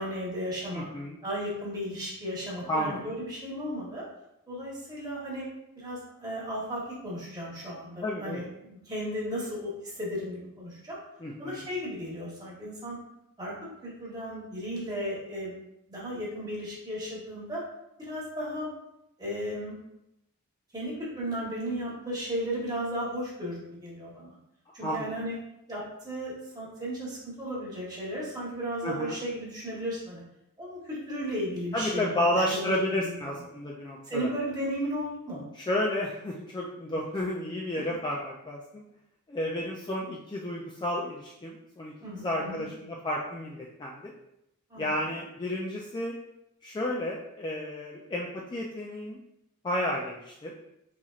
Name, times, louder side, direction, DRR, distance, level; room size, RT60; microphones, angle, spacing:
voice 1, 0.0-0.9 1.2-4.0 4.5-5.5 5.8-11.0 11.4-13.0 13.4-15.6 15.9-17.6 18.0-18.7 19.2-19.8 20.7-24.4 24.7-25.4 25.7-30.2 30.6-33.3 34.1-35.4 37.7-37.8 42.0-42.6 44.7-45.0, equal, 20° right, -6 dB, 1.1 m, -35 dB
voice 2, 0.7-1.2 2.7-3.1 8.0-8.4 11.2-11.6 24.8-25.1 28.8-29.2 31.7-34.3 35.6-38.8 39.3-44.1 44.8-46.1 46.6-49.2 49.6-50.5, left 1 dB, 20° left, -3 dB, 0.3 m, -31 dB
4.0 x 2.9 x 2.4 m, 0.83 s
head